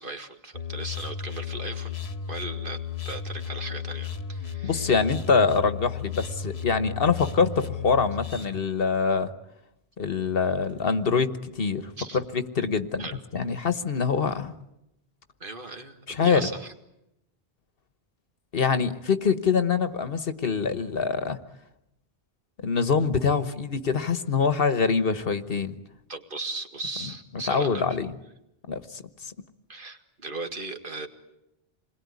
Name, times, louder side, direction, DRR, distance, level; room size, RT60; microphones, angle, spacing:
voice 1, 0.0-2.0 2.3-2.8 3.1-4.9 12.0-12.2 13.0-13.2 15.4-16.7 26.1-27.9 29.7-31.1, right 3 dB, 55° right, 6 dB, 2.2 m, -37 dB
sound 1, 0.5-8.6, left 7 dB, 85° left, 1.5 m, -34 dB
voice 2, 4.6-9.3 10.0-13.1 13.3-14.5 16.1-16.4 18.5-21.4 22.6-25.7 27.5-28.1 28.7-29.0, left 5 dB, 65° left, 12 dB, 1.4 m, -24 dB
28.0 x 21.5 x 9.7 m, 0.86 s
omnidirectional pair, 1.0 m